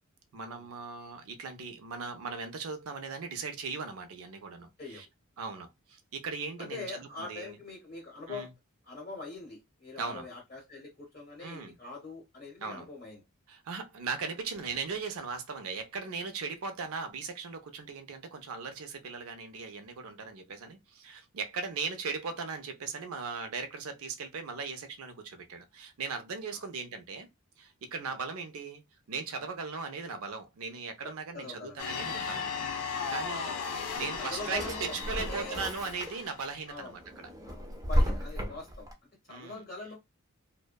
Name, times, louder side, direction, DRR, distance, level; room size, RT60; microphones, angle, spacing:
voice 1, 0.3-5.1 5.4-7.6 8.3-8.5 10.0-10.3 11.4-11.8 12.6-12.9 13.5-27.3 27.6-28.8 29.1-32.6 32.8-37.3 39.3-39.6, right 5 dB, 70° right, 0.5 m, -38 dB
voice 2, 6.6-8.5 8.9-13.2 26.5-26.7 31.0-31.8 33.4-33.6 33.9-35.6 36.7-37.0 37.5-38.9 39.3-40.0, left 3 dB, 35° left, 0.7 m, -43 dB
sound 1, 31.8-36.5, left 5 dB, 75° left, 0.5 m, -36 dB
Drawer open or close, 34.1-36.4 36.9-38.9, equal, 15° right, 0.4 m, -33 dB
2.6 x 2.1 x 2.2 m
head